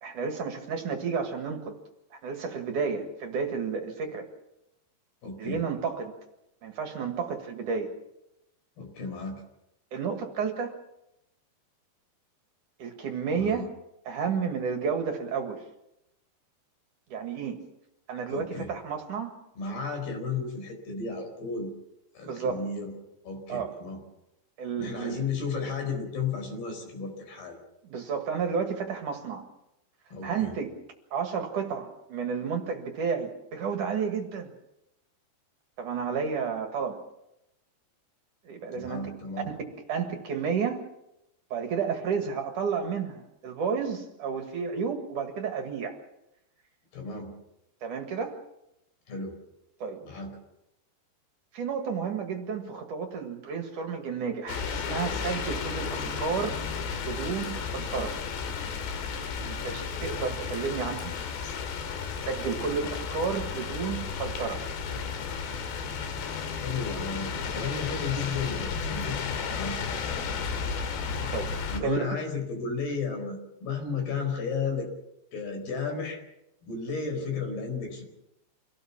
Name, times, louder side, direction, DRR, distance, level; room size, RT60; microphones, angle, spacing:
voice 1, 0.0-1.8 2.1-4.3 5.4-6.1 6.6-7.9 9.9-10.8 12.8-13.7 14.1-15.6 17.1-17.6 18.1-19.3 22.2-22.6 23.5-23.7 24.6-25.2 27.8-29.4 30.2-30.7 31.1-34.5 35.8-37.0 38.5-39.1 39.5-40.9 41.5-46.0 47.8-48.4 49.8-50.0 51.5-56.6 57.0-58.2 59.4-61.1 62.2-64.6 71.3-71.5 71.8-72.0, right 6 dB, 55° right, 4 dB, 2.9 m, -31 dB
voice 2, 5.2-5.6 8.8-9.4 13.3-13.7 18.3-18.7 19.6-21.7 22.1-22.9 23.2-24.0 24.8-27.6 30.1-30.5 38.7-39.5 46.9-47.3 49.1-49.4 50.0-50.4 66.5-69.2 69.5-69.8 71.7-74.9 75.3-76.2 76.6-78.0, left 5 dB, 65° left, 5 dB, 6.3 m, -33 dB
sound 1, 54.5-71.8, left 6 dB, 90° left, 4.3 m, -33 dB
26.0 x 17.5 x 7.2 m, 0.87 s
omnidirectional pair, 4.8 m